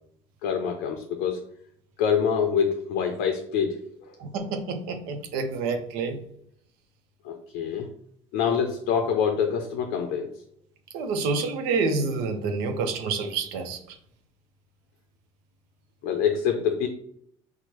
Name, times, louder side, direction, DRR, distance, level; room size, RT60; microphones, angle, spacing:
voice 1, 0.4-1.4 2.0-3.8 7.2-7.9 8.3-10.3 16.0-16.9, left 7 dB, 70° left, 5 dB, 0.5 m, -25 dB
voice 2, 4.2-6.2 10.9-13.8, right 4 dB, 75° right, 6 dB, 0.5 m, -28 dB
4.3 x 2.0 x 3.0 m, 0.68 s
supercardioid pair, 80°, 15 cm